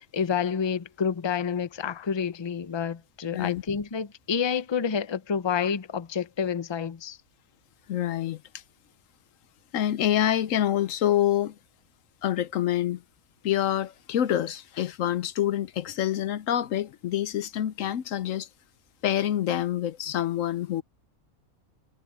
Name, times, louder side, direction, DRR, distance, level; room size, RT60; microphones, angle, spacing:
voice 1, 0.1-7.2, left 7 dB, 35° left, 0.4 m, -29 dB
voice 2, 7.9-8.4 9.7-11.5 12.2-13.0 13.4-18.5 19.0-20.8, left 11 dB, 70° left, 1.0 m, -26 dB
omnidirectional pair, 1.5 m